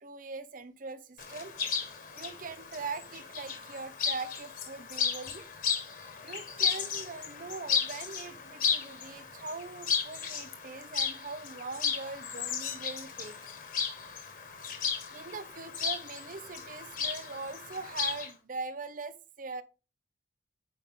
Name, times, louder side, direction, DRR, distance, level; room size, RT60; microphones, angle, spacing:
voice 1, 0.0-1.5 2.2-5.4 6.2-13.4 15.1-19.6, right 4 dB, 45° right, 0.7 m, -41 dB
Chirp tweet, 1.2-18.3, left 6 dB, 45° left, 1.6 m, -35 dB
9.6 x 5.1 x 3.7 m
head